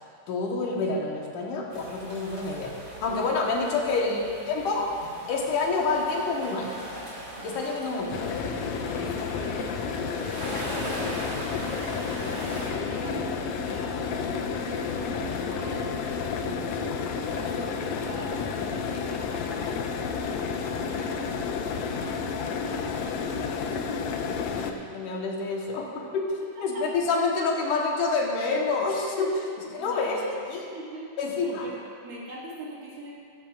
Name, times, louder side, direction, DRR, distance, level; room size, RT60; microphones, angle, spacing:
voice 1, 0.3-4.2 4.5-4.9 5.3-6.7 7.4-8.2 24.5-26.3 26.6-29.3 29.7-30.2 30.5-30.7 31.2-31.7, left 4 dB, 70° left, -1 dB, 2.6 m, -27 dB
sound 1, 1.7-12.7, right 1 dB, 35° right, 2.7 m, -40 dB
voice 2, 4.0-4.9 9.0-10.9 11.2-11.9 12.6-14.1 14.3-21.3 21.7-23.8 26.6-26.9 29.2-30.5 30.7-33.1, equal, 75° right, -6 dB, 3.8 m, -43 dB
sound 2, 8.1-24.7, left 5 dB, 85° left, 1.5 m, -31 dB
15.0 x 14.5 x 2.5 m, 2.3 s
omnidirectional pair, 3.9 m